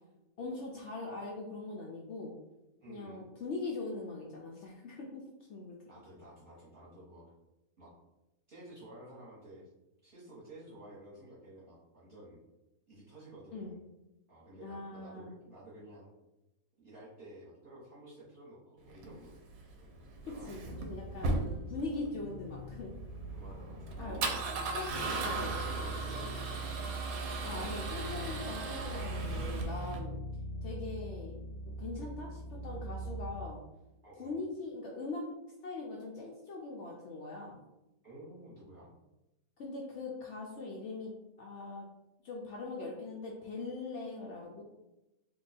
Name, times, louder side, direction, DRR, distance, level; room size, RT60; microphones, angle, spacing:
voice 1, 0.4-2.3 2.9-5.2 5.5-5.8 13.5-13.7 14.6-15.3 20.2-22.9 24.0-24.2 24.7-25.5 27.4-30.2 30.6-31.3 31.8-33.6 34.2-35.2 35.6-37.6 39.6-41.1 41.4-41.9 42.2-44.6, left 3 dB, 75° left, -2 dB, 0.6 m, -41 dB
voice 2, 2.8-3.3 5.9-7.2 7.8-7.9 8.5-9.7 10.0-12.4 12.9-13.8 14.3-16.1 16.8-19.3 19.8-20.0 20.3-20.7 21.2-21.3 23.3-24.4 25.2-25.3 25.7-26.7 34.0-34.3 38.0-38.9, right 1 dB, 40° right, -9 dB, 1.0 m, -52 dB
Male speech man speaking / Car / Engine starting, 18.9-30.0, right 3 dB, 70° right, 1.0 m, -38 dB
sound 1, 20.6-33.3, right 1 dB, 25° left, 0.5 m, -42 dB
2.7 x 2.3 x 3.9 m, 0.96 s
omnidirectional pair, 1.7 m